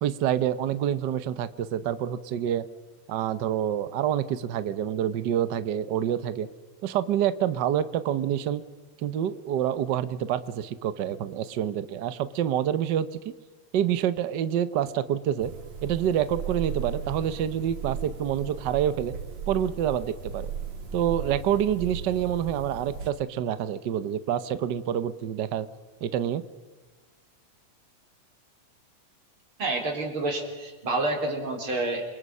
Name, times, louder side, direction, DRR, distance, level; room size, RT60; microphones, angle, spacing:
voice 1, 0.0-2.7 3.1-6.5 6.8-8.6 9.0-13.1 13.7-15.5 15.8-19.1 19.5-20.5 20.9-25.7 26.0-26.4, right 10 dB, 85° right, 13 dB, 0.9 m, -27 dB
sound 1, 15.4-23.1, right 6 dB, 65° right, 3.3 m, -36 dB
voice 2, 29.6-32.0, right 2 dB, 45° right, 2 dB, 4.9 m, -28 dB
28.5 x 25.0 x 5.6 m, 1.3 s
omnidirectional pair, 3.3 m